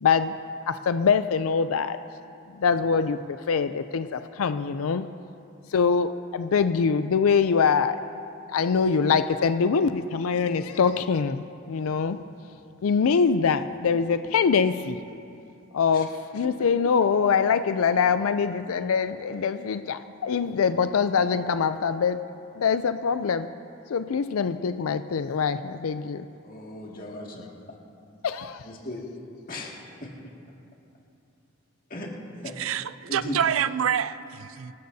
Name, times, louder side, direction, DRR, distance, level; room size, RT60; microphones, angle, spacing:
voice 1, 0.0-0.3 0.7-2.0 2.6-3.2 3.5-5.0 5.7-8.0 8.5-11.4 11.7-12.2 12.8-15.0 15.7-22.2 22.6-23.5 23.9-26.2 27.0-27.1 28.2-28.6, left 6 dB, 80° left, 11 dB, 0.4 m, -24 dB
voice 2, 26.4-27.4 28.7-29.0 29.5-29.7 31.9-32.1 32.4-32.5 33.1-33.4, left 1 dB, 40° left, -2 dB, 2.1 m, -36 dB
voice 3, 32.5-34.7, right 8 dB, 70° right, 15 dB, 0.4 m, -27 dB
25.0 x 13.5 x 2.7 m, 2.6 s
head